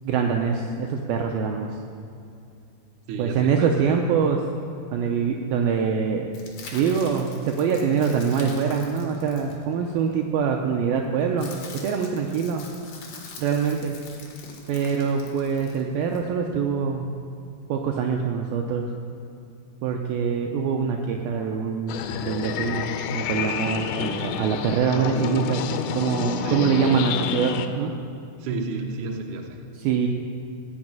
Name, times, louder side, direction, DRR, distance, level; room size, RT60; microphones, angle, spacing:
voice 1, 0.0-1.8 3.2-4.4 4.9-6.3 6.7-12.7 13.4-14.0 14.7-17.1 17.7-18.9 19.8-25.7 25.9-27.9 29.8-30.1, right 6 dB, 80° right, 2 dB, 2.3 m, -24 dB
voice 2, 3.1-3.7 26.4-26.8 28.4-29.6, right 3 dB, 65° right, 2 dB, 2.2 m, -32 dB
sound 1, 6.3-10.1 11.0-16.2, left 4 dB, 55° left, 3.1 m, -44 dB
sound 2, 21.9-27.7, left 8 dB, 85° left, 2.9 m, -29 dB
16.0 x 6.4 x 9.0 m, 2.5 s
omnidirectional pair, 4.9 m